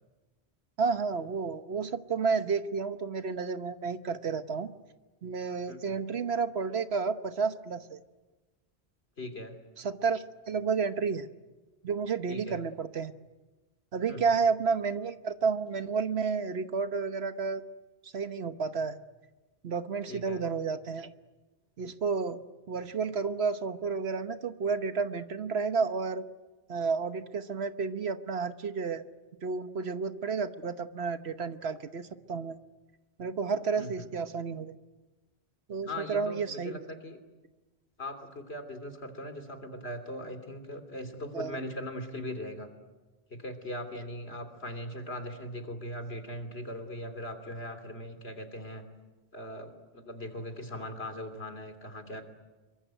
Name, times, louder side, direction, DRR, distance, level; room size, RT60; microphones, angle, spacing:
voice 1, 0.8-4.7 5.2-8.0 9.8-11.3 11.8-13.1 13.9-17.6 18.0-19.0 19.6-21.1 21.8-22.4 22.7-26.2 26.7-29.0 29.4-32.6 33.2-34.7 35.7-36.8 41.3-41.6, right 5 dB, 75° right, 10 dB, 1.4 m, -31 dB
voice 2, 5.7-6.0 9.2-9.6 12.3-12.6 14.1-14.4 20.1-20.4 33.8-34.1 35.8-37.2 38.0-42.7 43.3-48.8 49.3-52.2, left 1 dB, 70° left, 7 dB, 3.4 m, -40 dB
27.0 x 23.5 x 9.2 m, 1.2 s
omnidirectional pair, 1.1 m